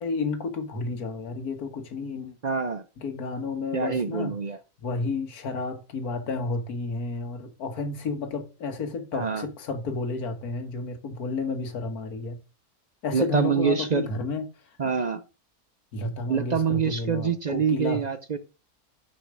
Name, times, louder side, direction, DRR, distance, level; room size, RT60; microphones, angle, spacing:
voice 1, 0.0-2.4 3.0-4.3 4.8-12.4 13.0-14.4 15.9-18.1, left 3 dB, 85° left, 1.9 m, -31 dB
voice 2, 2.4-2.8 3.7-4.6 9.1-9.5 13.1-14.0 14.8-15.2 16.3-18.4, right 6 dB, 55° right, 0.4 m, -26 dB
6.5 x 5.6 x 6.2 m
omnidirectional pair, 1.5 m